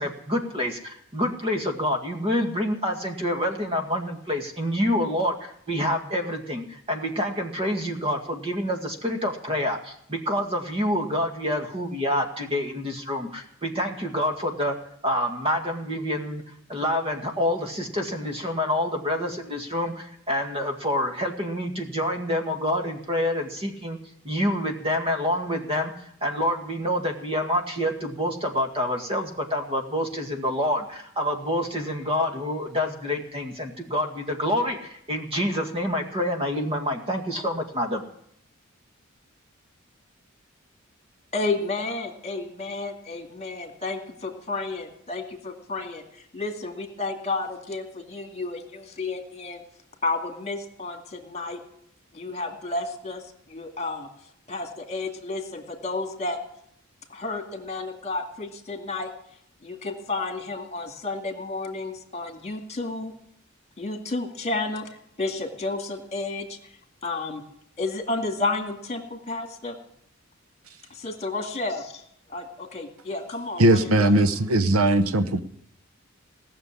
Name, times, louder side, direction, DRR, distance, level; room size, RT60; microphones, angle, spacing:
voice 1, 0.0-14.8 15.0-16.4 16.7-24.0 24.2-25.9 26.2-38.0, left 1 dB, 30° right, 3 dB, 2.0 m, -27 dB
voice 2, 41.3-49.6 50.0-51.6 52.1-54.1 54.5-56.4 57.1-59.1 59.6-63.1 63.8-64.9 65.2-66.6 67.0-67.4 67.8-69.8 70.9-72.0 72.3-74.1, left 3 dB, 30° left, 4 dB, 2.4 m, -31 dB
voice 3, 73.6-75.4, right 1 dB, 80° right, 11 dB, 0.9 m, -19 dB
18.5 x 6.8 x 9.8 m, 0.71 s
head